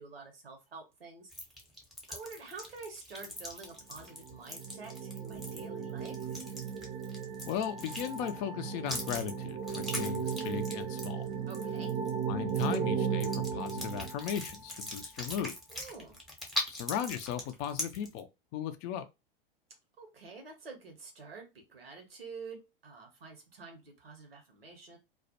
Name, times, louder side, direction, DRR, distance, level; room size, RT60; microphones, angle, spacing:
voice 1, 0.0-1.3 2.1-6.4 11.5-12.0 15.7-16.2 20.0-25.0, right 4 dB, 85° right, 0.9 m, -48 dB
sound 1, 1.3-8.4 8.9-12.2 12.5-12.8 13.2-18.2, left 1 dB, ahead, 0.8 m, -41 dB
sound 2, 4.0-14.7, right 7 dB, 40° right, 0.5 m, -36 dB
voice 2, 7.5-11.3 12.3-15.6 16.7-19.0, left 9 dB, 40° left, 0.4 m, -37 dB
2.3 x 2.1 x 2.8 m
figure-of-eight pair, 90°, 29 cm